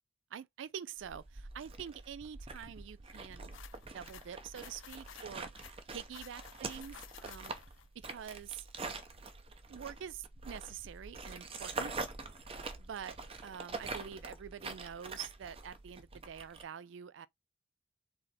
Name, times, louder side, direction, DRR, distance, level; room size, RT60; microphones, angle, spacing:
voice 1, 0.3-3.5 3.9-7.5 8.0-8.7 9.7-12.0 12.8-13.2 13.4-17.3, right 8 dB, 75° right, 0.4 m, -46 dB
sound 1, 1.0-16.6, right 3 dB, 30° right, 0.7 m, -45 dB
sound 2, 3.5-7.9, left 10 dB, 85° left, 0.5 m, -54 dB
3.8 x 3.1 x 4.1 m
head